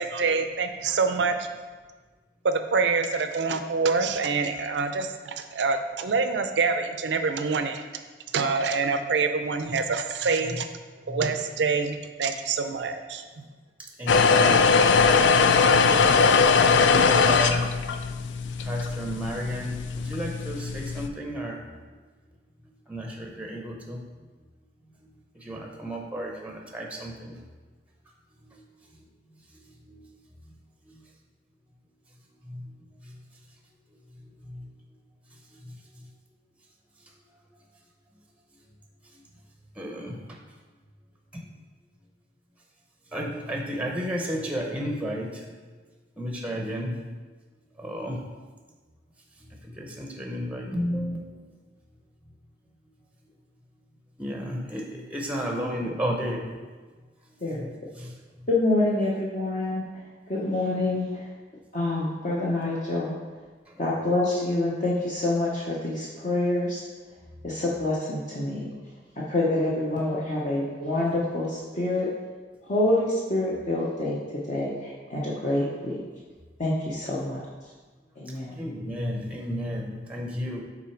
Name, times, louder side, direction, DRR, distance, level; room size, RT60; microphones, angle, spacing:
voice 1, 0.0-1.5 2.4-7.8 8.3-10.7 11.1-13.4, right 4 dB, 75° right, 8 dB, 0.5 m, -26 dB
voice 2, 14.0-15.2 16.9-17.6 18.7-21.6 22.9-24.0 25.5-27.4 39.8-40.1 43.1-45.3 46.2-47.0 47.8-48.2 49.8-51.4 54.2-54.8 55.1-56.5 78.6-80.6, equal, 5° right, 0 dB, 0.6 m, -32 dB
sound 1, 14.1-21.1, left 5 dB, 85° left, 0.4 m, -21 dB
voice 3, 58.5-59.8 60.3-61.3 61.7-63.1 63.8-66.8 67.4-68.7 69.3-72.1 72.6-74.2 74.5-76.0 76.6-77.4 78.2-78.5, left 2 dB, 45° left, -5 dB, 0.8 m, -26 dB
6.0 x 3.9 x 4.4 m, 1.4 s
head